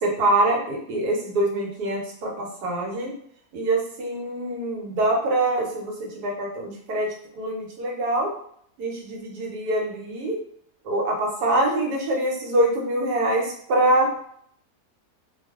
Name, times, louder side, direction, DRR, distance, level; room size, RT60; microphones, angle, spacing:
voice 1, 0.0-3.1 3.5-8.3 8.8-10.4 10.8-14.1, right 1 dB, 90° right, -1 dB, 1.4 m, -24 dB
2.6 x 2.5 x 3.5 m, 0.66 s
omnidirectional pair, 1.6 m